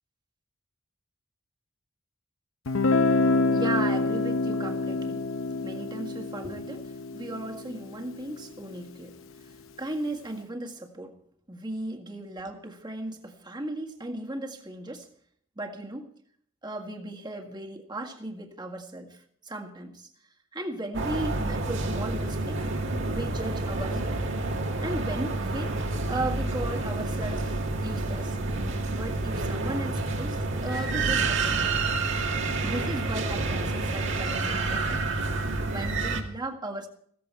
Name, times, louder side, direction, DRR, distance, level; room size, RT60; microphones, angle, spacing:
Guitar, 2.7-8.4, left 3 dB, 75° left, 0.8 m, -27 dB
voice 1, 3.5-5.2 5.6-9.2 9.5-11.1 11.5-15.1 15.6-16.1 16.6-20.1 20.5-22.6 23.1-24.2 24.8-25.8 26.1-27.5 27.8-28.4 28.9-31.8 32.6-35.1 35.7-36.9, right 1 dB, 20° right, 2 dB, 1.8 m, -36 dB
sound 1, 20.9-36.2, right 3 dB, 65° right, 2.1 m, -29 dB
16.5 x 14.5 x 4.5 m, 0.64 s
head